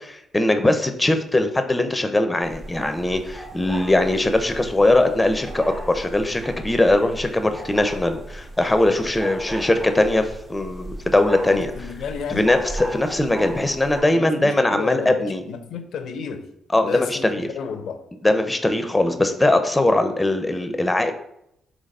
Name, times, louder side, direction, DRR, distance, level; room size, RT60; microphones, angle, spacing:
voice 1, 0.0-11.7 12.3-15.4 16.7-17.5 18.2-21.1, left 2 dB, 15° left, 8 dB, 0.7 m, -20 dB
sound 1, 2.4-14.0, right 1 dB, 40° right, 1.3 m, -36 dB
voice 2, 11.5-12.6 14.1-16.5 16.8-17.3 17.6-18.0 19.8-19.9, left 6 dB, 70° left, 7 dB, 0.6 m, -32 dB
4.0 x 2.9 x 4.1 m, 0.78 s
supercardioid pair, 55°, 0 cm